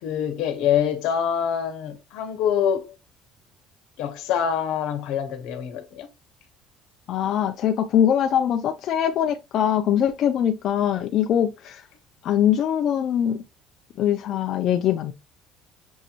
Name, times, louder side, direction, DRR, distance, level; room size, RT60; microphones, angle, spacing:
voice 1, 0.0-2.9 4.0-6.1, left 8 dB, 80° left, 1.0 m, -25 dB
voice 2, 7.1-11.9 12.2-13.4 14.0-15.1, left 9 dB, 55° left, 0.5 m, -22 dB
6.3 x 3.0 x 2.4 m
cardioid pair, 140°, 0 cm